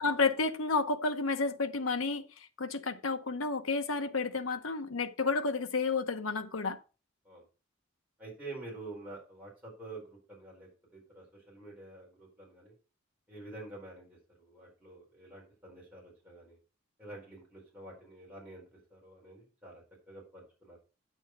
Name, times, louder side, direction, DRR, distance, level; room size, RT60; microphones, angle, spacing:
voice 1, 0.0-6.8, left 4 dB, 85° left, 0.9 m, -31 dB
voice 2, 8.2-12.7 13.3-16.6 17.0-18.6 18.9-20.8, right 2 dB, 10° right, 4.5 m, -48 dB
8.8 x 6.4 x 4.5 m
head